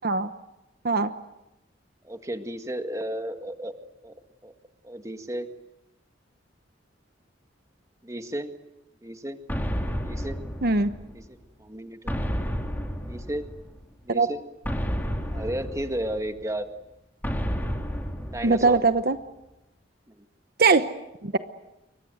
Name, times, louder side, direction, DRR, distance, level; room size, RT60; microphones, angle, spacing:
voice 1, 2.0-3.7 4.0-4.1 4.4-4.5 4.8-5.5 8.0-8.5 9.0-9.4 10.0-10.4 11.1-12.1 13.1-13.5 14.0-14.4 15.3-16.7 18.3-18.8 20.2-20.3, right 1 dB, 15° right, 7 dB, 1.8 m, -33 dB
sound 1, 9.5-11.3 12.1-13.8 14.6-16.4 17.2-19.0, equal, 10° left, 3.3 m, -31 dB
voice 2, 18.4-19.2 20.6-20.9 21.2-21.4, right 3 dB, 55° right, 10 dB, 1.0 m, -21 dB
29.0 x 24.5 x 7.9 m, 0.94 s
head